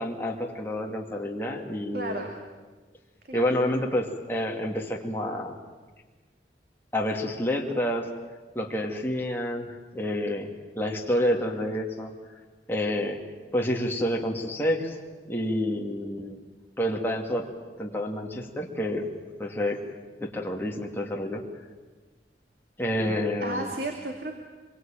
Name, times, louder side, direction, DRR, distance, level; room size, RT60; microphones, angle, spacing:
voice 1, 0.0-2.3 3.3-5.6 6.9-8.1 8.5-12.1 12.7-13.2 13.5-15.0 15.2-16.4 16.8-17.4 17.8-19.1 19.4-19.8 20.2-21.4 22.8-23.7, left 1 dB, 10° left, -1 dB, 2.6 m, -28 dB
voice 2, 1.9-2.4 3.3-3.6 23.4-24.4, right 2 dB, 55° right, 2 dB, 2.6 m, -33 dB
26.0 x 23.5 x 9.2 m, 1.3 s
head